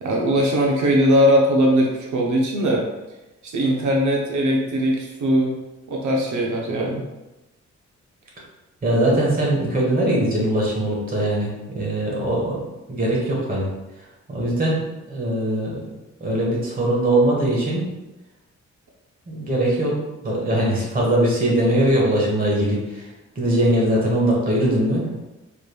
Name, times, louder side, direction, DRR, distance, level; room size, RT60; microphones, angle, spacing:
voice 1, 0.0-2.9 3.4-5.5 5.9-7.0, equal, 80° right, -1 dB, 0.7 m, -20 dB
voice 2, 8.8-12.6 12.9-13.7 14.3-15.8 16.2-17.8 19.3-20.0 20.2-23.0 23.3-25.1, right 1 dB, 30° right, -3 dB, 1.1 m, -21 dB
5.0 x 3.3 x 2.2 m, 1.0 s
wide cardioid pair, 175°, 29 cm